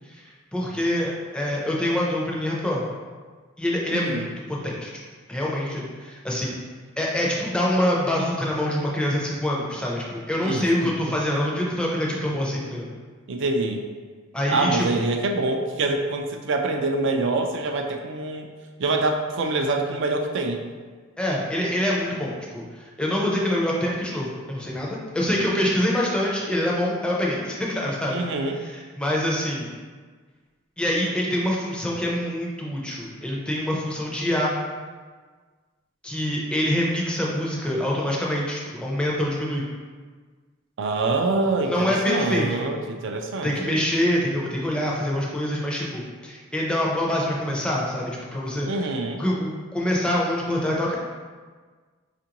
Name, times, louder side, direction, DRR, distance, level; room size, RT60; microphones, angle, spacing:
voice 1, 0.1-2.8 3.6-4.9 5.3-6.6 7.0-12.9 14.3-14.9 21.2-28.2 28.6-29.7 30.8-34.5 36.0-39.6 41.6-42.6 43.4-48.9 49.2-50.9, left 1 dB, 5° left, -4 dB, 0.5 m, -25 dB
voice 2, 3.9-4.3 10.4-10.9 13.3-13.8 14.5-18.5 18.8-20.6 28.1-28.5 40.8-43.8 48.7-49.2, right 2 dB, 55° right, 4 dB, 0.4 m, -25 dB
4.4 x 2.5 x 2.9 m, 1.5 s
head